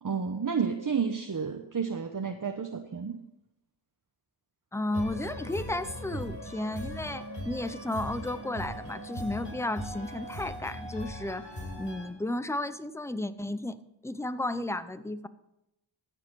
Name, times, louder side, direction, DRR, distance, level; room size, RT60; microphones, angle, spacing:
voice 1, 0.0-3.2, right 6 dB, 40° right, 5 dB, 0.9 m, -31 dB
voice 2, 4.7-11.5 11.8-13.8 14.0-15.3, left 1 dB, 5° left, 14 dB, 0.6 m, -33 dB
sound 1, 4.9-12.1, equal, 60° left, 4.7 m, -39 dB
15.0 x 6.6 x 4.7 m, 0.87 s
cardioid pair, 50°, 48 cm